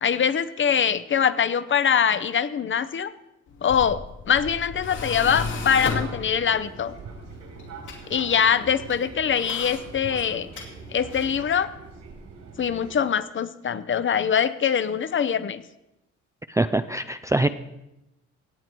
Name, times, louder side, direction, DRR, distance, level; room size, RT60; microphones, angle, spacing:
voice 1, 0.0-3.1 3.6-6.9 8.1-10.5 10.9-11.7 12.6-15.6, left 7 dB, 40° left, 14 dB, 0.7 m, -23 dB
Tools, 3.5-11.4, left 4 dB, 80° left, 2.6 m, -36 dB
Fixed-wing aircraft airplane, 5.1-13.0, right 4 dB, 70° right, 3.2 m, -43 dB
voice 2, 16.5-17.5, right 2 dB, 10° right, 10 dB, 0.4 m, -23 dB
17.0 x 8.2 x 4.5 m, 0.92 s
cardioid pair, 90°, 30 cm